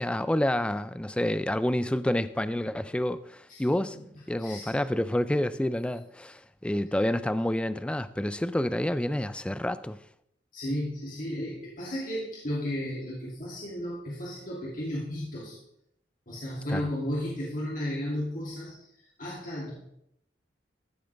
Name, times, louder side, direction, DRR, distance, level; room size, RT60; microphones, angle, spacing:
voice 1, 0.0-4.0 4.3-10.0 16.7-16.8, left 1 dB, 5° left, 0.3 m, -28 dB
voice 2, 3.5-4.0 4.4-4.8 10.5-15.6 16.3-19.7, equal, 50° left, 2.7 m, -34 dB
14.5 x 7.7 x 3.4 m
head